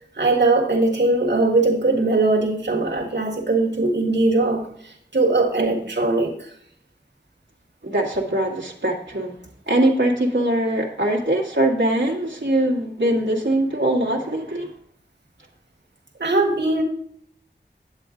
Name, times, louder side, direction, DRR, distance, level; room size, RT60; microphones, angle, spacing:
voice 1, 0.1-6.5 16.2-16.8, right 2 dB, 70° right, -2 dB, 1.6 m, -20 dB
voice 2, 7.8-9.3 9.7-14.7, right 1 dB, 85° right, -3 dB, 1.7 m, -22 dB
9.7 x 7.8 x 3.8 m, 0.63 s
wide cardioid pair, 45°, 19 cm